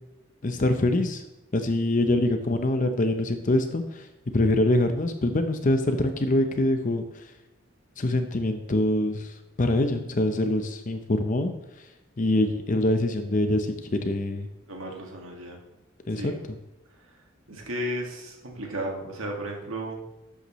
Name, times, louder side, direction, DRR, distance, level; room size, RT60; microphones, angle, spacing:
voice 1, 0.4-1.2 1.5-4.1 4.3-7.2 8.0-11.5 12.2-14.5 16.1-16.6, left 1 dB, 40° left, 7 dB, 0.6 m, -24 dB
voice 2, 14.7-15.6 16.1-16.4 17.5-20.0, right 1 dB, 80° right, 0 dB, 1.9 m, -34 dB
12.0 x 8.3 x 3.1 m, 0.98 s
head